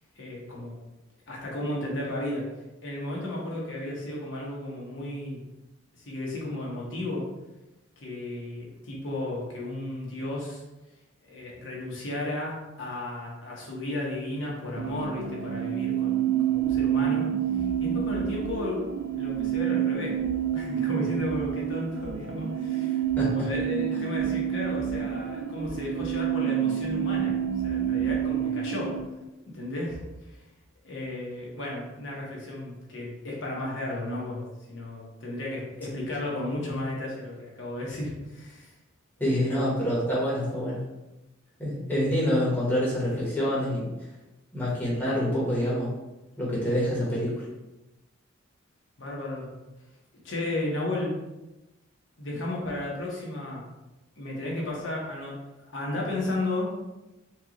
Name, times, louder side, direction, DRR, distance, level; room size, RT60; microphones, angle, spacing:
voice 1, 0.2-0.7 1.3-2.5 2.8-5.4 6.0-7.2 8.0-10.6 11.2-16.2 16.5-17.3 17.6-18.9 19.1-20.2 20.5-27.3 27.6-29.0 29.5-30.0 30.3-30.4 30.8-38.7 39.3-39.6 49.0-49.5 50.2-51.2 52.2-53.7 54.2-56.8, left 1 dB, 65° left, -4 dB, 1.2 m, -34 dB
sound 1, 14.8-29.0, right 9 dB, 70° right, 0.3 m, -28 dB
voice 2, 23.2-23.5 39.2-40.8 41.6-43.9 44.5-45.9 46.4-47.3, equal, 10° left, -8 dB, 1.2 m, -26 dB
4.5 x 2.4 x 3.0 m, 1.0 s
head